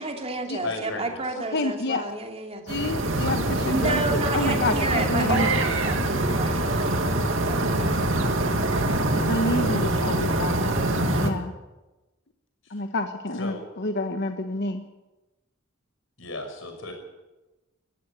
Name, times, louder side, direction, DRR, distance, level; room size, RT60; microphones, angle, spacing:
voice 1, 0.0-2.7 3.7-8.0, right 2 dB, 30° right, 3 dB, 2.9 m, -31 dB
voice 2, 0.6-1.2 13.4-13.6 16.2-16.9, left 2 dB, 80° left, 4 dB, 6.0 m, -34 dB
voice 3, 1.3-2.0 2.7-5.5 9.1-11.5 12.7-14.8, left 2 dB, 60° left, 6 dB, 1.3 m, -29 dB
sound 1, 2.7-11.3, right 1 dB, 70° right, 2.4 m, -24 dB
19.0 x 15.0 x 9.9 m, 1.1 s
head